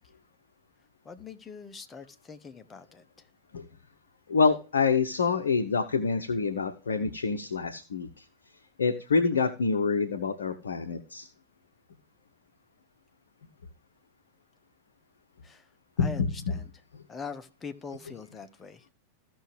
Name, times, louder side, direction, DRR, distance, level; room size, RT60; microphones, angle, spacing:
voice 1, 1.0-3.0 15.4-15.6 16.0-16.7 17.1-18.8, left 5 dB, 15° left, 0.9 m, -42 dB
voice 2, 4.3-8.2 8.8-11.3 16.0-16.6 16.9-17.0, left 5 dB, 70° left, 0.7 m, -27 dB
15.0 x 6.0 x 3.2 m
figure-of-eight pair, 90°, 0 cm